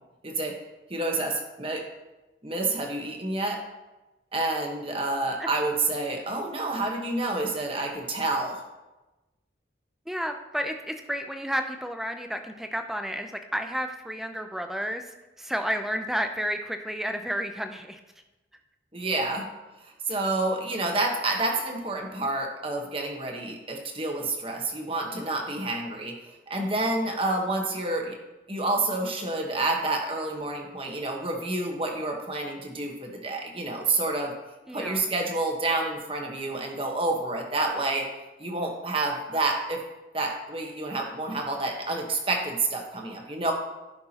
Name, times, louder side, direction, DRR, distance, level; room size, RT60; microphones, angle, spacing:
voice 1, 0.2-0.5 0.9-1.8 2.4-3.6 4.3-8.6 18.9-19.5 19.8-28.2 28.5-34.3 34.7-38.0 38.4-39.8 40.1-43.5, right 2 dB, 30° right, 1 dB, 1.2 m, -29 dB
voice 2, 10.1-15.0 15.4-18.0 34.7-35.1, equal, ahead, 5 dB, 0.5 m, -31 dB
15.0 x 5.9 x 2.9 m, 1.1 s
head